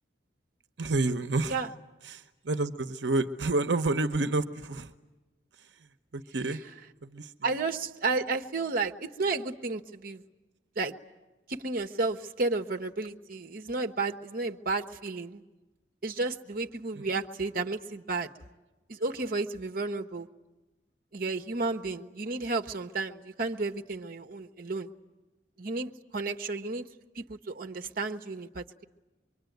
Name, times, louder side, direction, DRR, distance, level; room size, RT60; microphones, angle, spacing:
voice 1, 0.8-1.6 2.0-4.9 5.6-6.6 7.0-7.3 16.9-17.2, right 2 dB, 75° right, 9 dB, 1.0 m, -30 dB
voice 2, 7.4-10.2 10.8-10.9 11.5-15.4 16.0-18.3 18.9-20.3 21.1-24.9 25.6-26.9 27.1-28.8, right 3 dB, 55° right, 6 dB, 1.1 m, -32 dB
25.0 x 23.5 x 9.3 m, 1.1 s
head